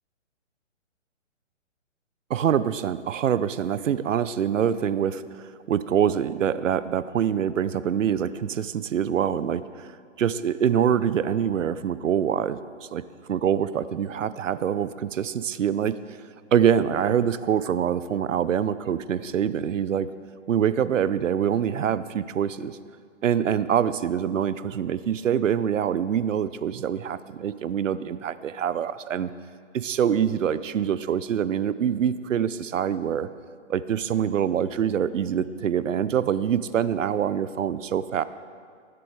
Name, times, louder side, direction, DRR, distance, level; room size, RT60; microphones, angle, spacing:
voice 1, 2.3-9.9 10.2-13.0 13.3-15.9 16.5-20.1 20.5-22.8 23.2-29.3 29.7-33.3 33.7-38.2, right 9 dB, 80° right, 15 dB, 0.7 m, -25 dB
20.0 x 7.7 x 4.8 m, 2.1 s
hypercardioid pair, 180°, 37 cm